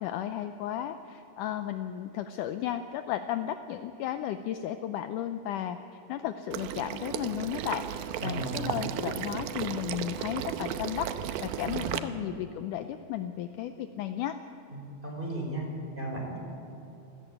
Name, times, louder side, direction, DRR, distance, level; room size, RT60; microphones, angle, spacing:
voice 1, 0.0-5.8 6.1-7.8 8.2-11.1 11.4-14.4, left 11 dB, 80° left, 9 dB, 1.8 m, -34 dB
Water / Liquid, 6.5-12.0, right 10 dB, 80° right, 2.7 m, -35 dB
voice 2, 8.2-8.7 11.7-11.9 14.7-15.6 16.0-16.4, right 2 dB, 10° right, -1 dB, 5.3 m, -35 dB
27.5 x 14.0 x 9.0 m, 2.8 s
omnidirectional pair, 4.4 m